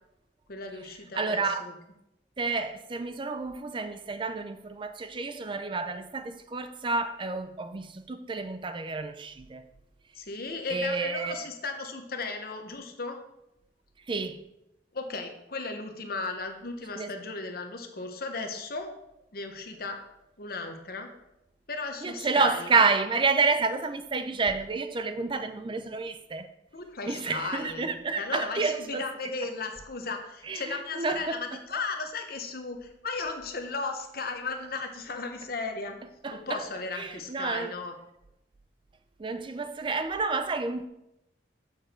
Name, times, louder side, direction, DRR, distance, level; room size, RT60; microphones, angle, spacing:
voice 1, 0.5-1.7 10.1-13.2 14.9-18.9 19.3-20.0 20.4-21.1 21.7-22.7 26.7-36.0 36.3-37.9, left 3 dB, 60° left, 1.1 m, -35 dB
voice 2, 1.1-1.7 2.4-9.6 10.7-11.5 14.1-14.4 17.0-17.1 22.0-26.5 27.1-29.1 30.4-31.4 36.2-36.6 36.9-37.7 39.2-40.9, right 4 dB, 30° right, 0.4 m, -29 dB
7.2 x 7.0 x 4.4 m
head